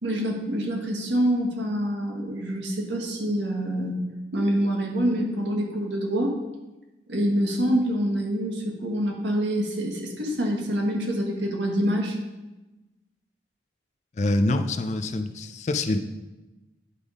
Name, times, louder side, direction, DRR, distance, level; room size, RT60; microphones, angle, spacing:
voice 1, 0.0-4.0 4.3-6.3 7.1-12.2, equal, 80° right, 0 dB, 1.5 m, -26 dB
voice 2, 14.2-16.0, left 2 dB, 40° left, 8 dB, 0.4 m, -25 dB
9.9 x 3.6 x 4.9 m, 1.1 s
head